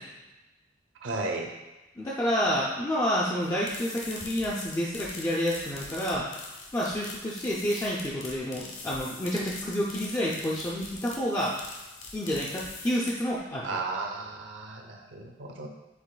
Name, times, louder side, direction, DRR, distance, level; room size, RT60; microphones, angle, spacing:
voice 1, 1.0-1.5 13.6-15.7, right 3 dB, 70° right, 2 dB, 0.7 m, -34 dB
voice 2, 2.0-6.3 6.7-11.6 12.1-13.7, equal, 15° left, -5 dB, 0.4 m, -29 dB
sound 1, 3.4-13.4, left 3 dB, 75° left, 0.9 m, -43 dB
7.9 x 3.0 x 2.2 m, 1.1 s
head